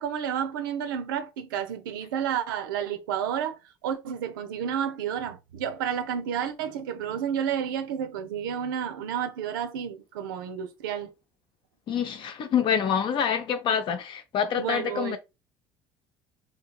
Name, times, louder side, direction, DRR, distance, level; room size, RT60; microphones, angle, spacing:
voice 1, 0.0-11.1 14.6-15.2, right 8 dB, 80° right, 0.4 m, -31 dB
voice 2, 11.9-15.2, left 8 dB, 50° left, 0.5 m, -26 dB
2.8 x 2.7 x 2.3 m
hypercardioid pair, 60°, 11 cm